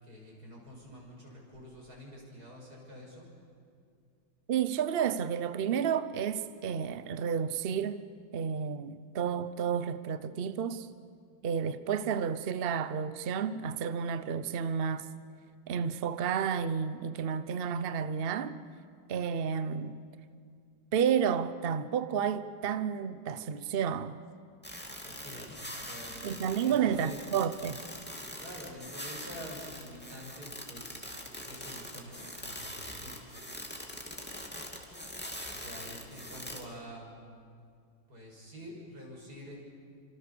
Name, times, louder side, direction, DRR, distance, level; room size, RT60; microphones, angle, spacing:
voice 1, 0.0-3.3 25.0-25.5 25.7-27.2 28.4-31.1 31.4-33.1 35.5-37.1 38.1-39.5, equal, 45° right, 6.7 m, -47 dB
voice 2, 4.5-8.0 8.3-10.9 11.4-15.1 15.7-18.6 19.1-20.0 20.9-24.1 26.2-27.8, right 7 dB, 90° right, 0.5 m, -31 dB
sound 1, 24.6-36.6, equal, 5° left, 2.5 m, -43 dB
28.5 x 25.5 x 6.9 m
omnidirectional pair, 2.2 m